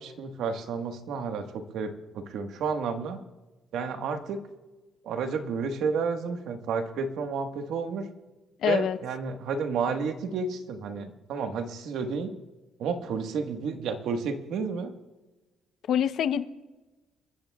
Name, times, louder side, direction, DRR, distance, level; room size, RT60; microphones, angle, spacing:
voice 1, 0.0-3.2 3.7-4.4 5.0-8.1 8.6-12.3 12.8-14.9, right 5 dB, 75° right, 5 dB, 1.4 m, -31 dB
voice 2, 8.6-9.0 15.9-16.4, left 9 dB, 60° left, 11 dB, 0.7 m, -25 dB
29.0 x 14.5 x 2.4 m, 1.1 s
cardioid pair, 135°, 0 cm